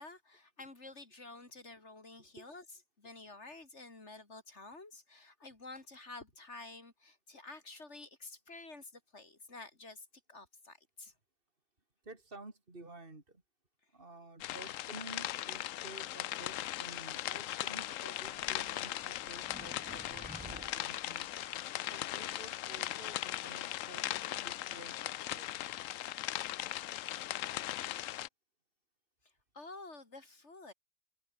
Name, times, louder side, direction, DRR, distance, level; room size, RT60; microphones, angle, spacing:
voice 1, 0.0-2.6 3.0-11.1 29.5-30.7, left 3 dB, 55° left, 3.7 m, -50 dB
voice 2, 12.0-13.4 13.9-21.3 21.9-25.8, right 2 dB, 40° right, 4.1 m, -52 dB
sound 1, 14.4-28.3, left 13 dB, 75° left, 1.0 m, -39 dB
sound 2, 18.2-21.6, right 1 dB, 5° right, 2.0 m, -53 dB
omnidirectional pair, 1.4 m